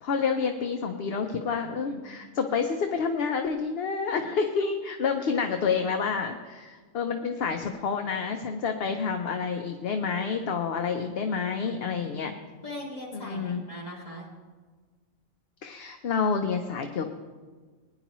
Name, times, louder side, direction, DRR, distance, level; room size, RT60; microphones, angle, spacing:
voice 1, 0.0-12.3 13.2-13.6 15.6-17.1, left 5 dB, 55° left, 5 dB, 0.8 m, -29 dB
voice 2, 11.3-12.3 12.6-14.3, left 1 dB, 30° left, -3 dB, 2.4 m, -41 dB
20.5 x 10.0 x 3.0 m, 1.5 s
omnidirectional pair, 1.4 m